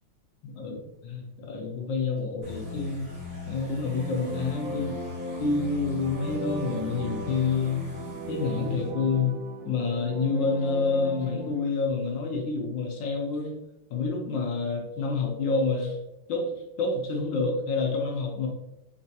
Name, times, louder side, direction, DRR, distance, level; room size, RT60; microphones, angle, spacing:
voice 1, 0.4-3.1 3.4-5.0 5.4-7.9 8.3-9.4 9.6-13.5 13.9-16.0 16.3-18.5, left 4 dB, 70° left, 0 dB, 1.2 m, -28 dB
sound 1, 2.4-8.9, left 4 dB, 70° right, 2.1 m, -40 dB
sound 2, 3.7-11.6, right 2 dB, 90° right, 0.7 m, -37 dB
4.5 x 3.1 x 2.7 m, 0.88 s
omnidirectional pair, 2.4 m